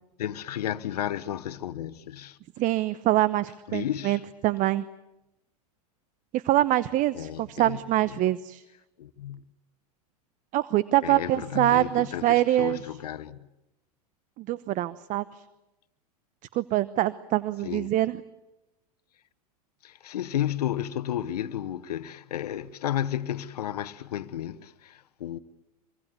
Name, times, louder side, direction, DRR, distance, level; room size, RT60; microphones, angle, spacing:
voice 1, 0.2-2.4 3.7-4.2 7.1-8.2 9.0-9.5 11.0-13.4 17.6-17.9 19.8-25.4, left 11 dB, 75° left, 1.1 m, -33 dB
voice 2, 2.6-4.8 6.3-8.6 10.5-12.8 14.4-15.2 16.5-18.2, right 15 dB, 40° right, 0.9 m, -24 dB
24.5 x 24.5 x 9.7 m
hypercardioid pair, 95°, 20 cm